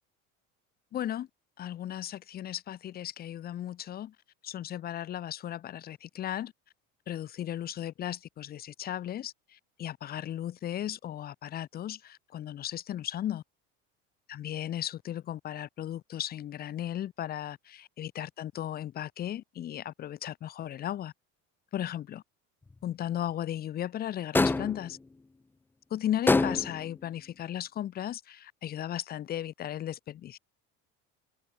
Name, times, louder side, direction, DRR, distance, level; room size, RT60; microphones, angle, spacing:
voice 1, 0.9-1.3 1.6-4.1 4.4-6.5 7.1-13.4 14.3-21.1 21.7-22.2 22.8-25.0 25.9-30.4, left 11 dB, 30° left, 0.9 m, -36 dB
sound 1, 24.3-24.9 26.3-26.9, left 3 dB, 5° left, 0.4 m, -24 dB
open air
cardioid pair, 150°, 29 cm